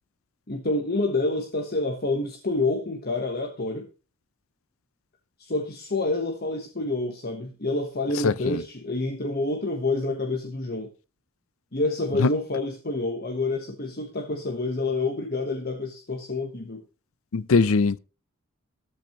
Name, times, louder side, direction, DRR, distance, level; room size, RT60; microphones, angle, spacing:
voice 1, 0.5-3.9 5.4-10.9 11.7-16.8, left 2 dB, 45° left, 1.2 m, -28 dB
voice 2, 8.2-8.6 12.2-12.3 17.3-18.0, left 4 dB, 70° left, 0.5 m, -21 dB
14.0 x 12.0 x 3.0 m
head